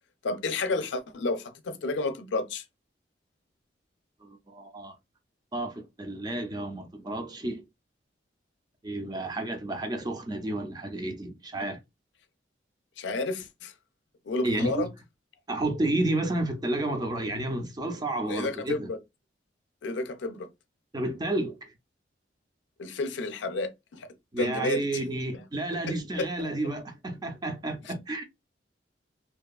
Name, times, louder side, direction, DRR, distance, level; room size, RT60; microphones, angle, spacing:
voice 1, 0.2-2.6 13.0-13.7 14.3-14.9 18.3-19.0 19.8-20.5 22.8-24.1 24.4-24.8 25.9-26.3, left 3 dB, 80° left, 0.4 m, -31 dB
voice 2, 4.2-4.9 5.5-7.6 8.8-11.8 14.4-14.9 15.5-18.9 20.9-21.7 24.3-28.3, right 2 dB, 20° right, 0.4 m, -31 dB
2.6 x 2.3 x 2.3 m
head